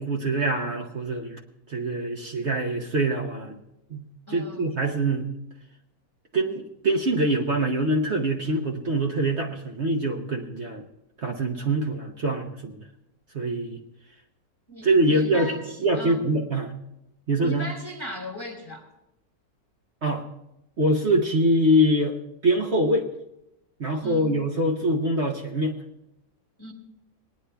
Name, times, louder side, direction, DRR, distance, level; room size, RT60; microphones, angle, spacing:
voice 1, 0.0-1.4 1.7-3.6 3.9-5.3 6.3-10.8 11.2-12.8 13.3-13.8 14.8-15.5 15.8-16.7 17.3-17.7 20.0-20.2 20.8-22.2 22.4-23.1 23.8-25.7, right 1 dB, 50° right, 0 dB, 1.1 m, -24 dB
voice 2, 4.3-4.7 14.7-16.2 17.4-18.9 24.0-24.3 26.6-26.7, equal, 15° left, 2 dB, 1.5 m, -37 dB
19.0 x 9.8 x 3.4 m, 0.86 s
omnidirectional pair, 1.6 m